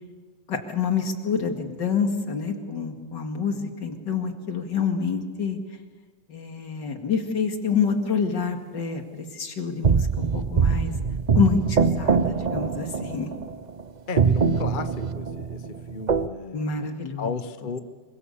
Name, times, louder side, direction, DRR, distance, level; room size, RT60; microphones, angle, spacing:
voice 1, 0.5-5.6 6.3-10.9 11.3-13.3 16.5-17.3 17.6-17.7, left 6 dB, 75° left, 4 dB, 2.9 m, -27 dB
sound 1, 9.8-13.8 14.2-16.3, right 6 dB, 55° right, 0.4 m, -23 dB
voice 2, 14.1-15.6 15.9-17.8, left 5 dB, 35° left, 10 dB, 0.9 m, -34 dB
26.5 x 24.0 x 7.1 m, 1.4 s
omnidirectional pair, 2.0 m